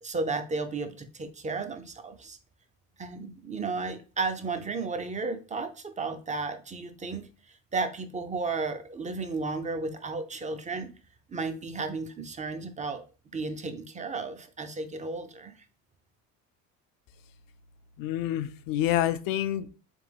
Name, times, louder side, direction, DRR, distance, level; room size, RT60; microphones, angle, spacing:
voice 1, 0.0-2.4 3.0-7.2 7.7-10.9 11.3-13.0 13.3-15.5, right 3 dB, 20° right, 8 dB, 0.6 m, -33 dB
voice 2, 18.0-19.7, left 12 dB, 60° left, 12 dB, 0.5 m, -27 dB
3.4 x 3.4 x 3.3 m, 0.36 s
supercardioid pair, 80°, 39 cm